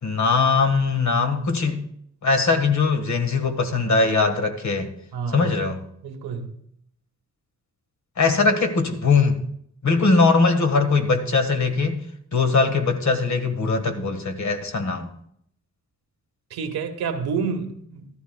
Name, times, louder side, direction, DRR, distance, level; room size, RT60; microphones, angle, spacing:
voice 1, 0.0-1.8 2.2-4.9 5.3-5.8 8.2-9.4 9.8-12.0 12.3-15.1, left 4 dB, 50° left, 1.5 m, -21 dB
voice 2, 5.1-5.5 6.0-6.5 16.5-18.1, right 5 dB, 90° right, 1.2 m, -29 dB
14.5 x 13.0 x 2.2 m
cardioid pair, 80°, 37 cm